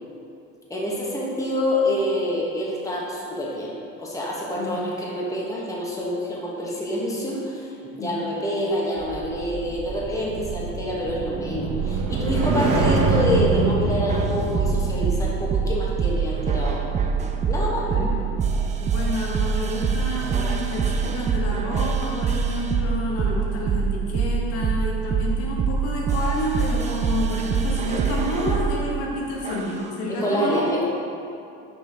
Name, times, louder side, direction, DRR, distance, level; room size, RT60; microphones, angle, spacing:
voice 1, 0.7-16.8 17.5-18.1 30.1-30.8, equal, 10° left, -4 dB, 1.1 m, -27 dB
sound 1, 9.0-19.4 19.7-20.0, right 3 dB, 50° right, 0.8 m, -26 dB
voice 2, 12.3-12.7 17.8-18.3 18.8-30.8, left 1 dB, 85° left, -3 dB, 1.3 m, -29 dB
sound 2, 12.4-13.4 14.1-28.8 29.4-29.8, right 6 dB, 25° right, 0.3 m, -24 dB
6.0 x 4.5 x 3.4 m, 2.6 s
supercardioid pair, 105°, 32 cm